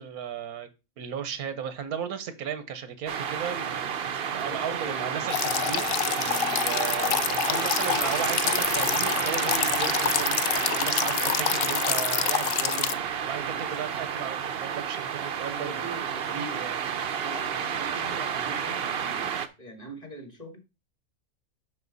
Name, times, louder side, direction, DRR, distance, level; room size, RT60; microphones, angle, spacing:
voice 1, 0.0-3.9 4.3-10.4 10.7-13.0 13.3-15.8 16.2-16.8, right 7 dB, 85° right, 11 dB, 1.4 m, -36 dB
sound 1, 3.1-19.5, right 7 dB, 55° right, 0.8 m, -30 dB
voice 2, 4.4-5.4 10.7-10.9 13.4-13.7 15.5-16.7 17.2-20.6, right 1 dB, 25° left, 5 dB, 1.9 m, -43 dB
sound 2, 5.3-12.9, left 10 dB, 85° left, 0.5 m, -27 dB
7.3 x 6.2 x 4.0 m, 0.27 s
omnidirectional pair, 1.5 m